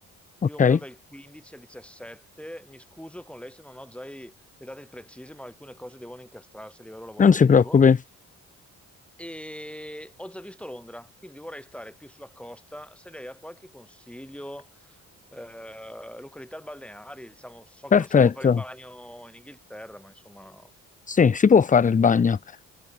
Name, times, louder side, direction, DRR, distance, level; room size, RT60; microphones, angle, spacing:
voice 1, 0.4-7.8 9.2-15.0 15.3-20.7, equal, 5° left, 2.9 m, -42 dB
voice 2, 7.2-8.0 17.9-18.6 21.1-22.6, left 6 dB, 20° left, 0.5 m, -18 dB
hypercardioid pair, 45°, 38 cm